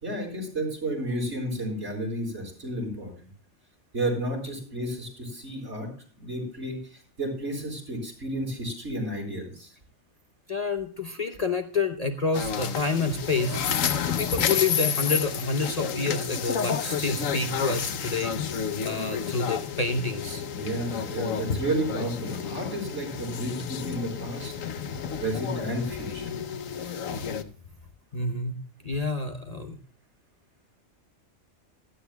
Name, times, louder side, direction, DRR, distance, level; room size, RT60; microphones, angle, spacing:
voice 1, 0.0-3.1 3.9-5.9 6.2-9.7 20.5-24.5 25.2-26.3, right 1 dB, 65° right, 0 dB, 5.2 m, -32 dB
voice 2, 10.5-13.6 14.1-20.5 27.2-27.3 28.1-28.6 28.8-29.8, left 3 dB, 35° left, 5 dB, 0.8 m, -28 dB
sound 1, 12.3-27.4, left 7 dB, 85° left, 1.2 m, -30 dB
16.5 x 13.5 x 2.3 m, 0.42 s
omnidirectional pair, 1.3 m